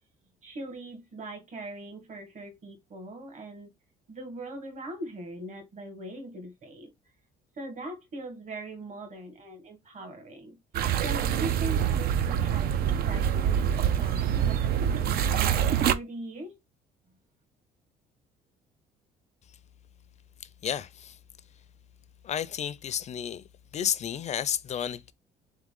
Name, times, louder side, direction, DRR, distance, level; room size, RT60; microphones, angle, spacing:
voice 1, 0.4-3.7 4.1-6.9 7.6-10.6 11.0-16.6, right 2 dB, 45° right, 1.5 m, -41 dB
sound 1, 10.7-15.9, right 9 dB, 65° right, 0.5 m, -25 dB
voice 2, 20.6-21.2 22.2-23.4 23.7-25.1, left 9 dB, 40° left, 0.5 m, -31 dB
3.6 x 3.6 x 3.6 m
cardioid pair, 110°, 17 cm